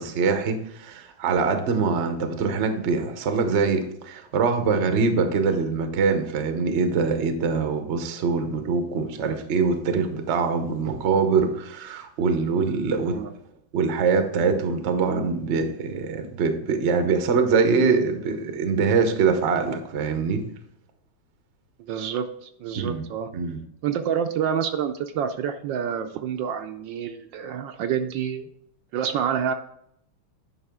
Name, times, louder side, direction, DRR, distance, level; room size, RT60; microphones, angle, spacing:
voice 1, 0.0-13.2 13.7-20.4 22.7-23.0 23.3-23.6, right 5 dB, 50° right, 7 dB, 0.8 m, -23 dB
voice 2, 21.8-23.3 23.8-28.5 28.9-29.5, right 8 dB, 75° right, 7 dB, 1.2 m, -28 dB
9.7 x 5.6 x 3.6 m, 0.73 s
omnidirectional pair, 2.2 m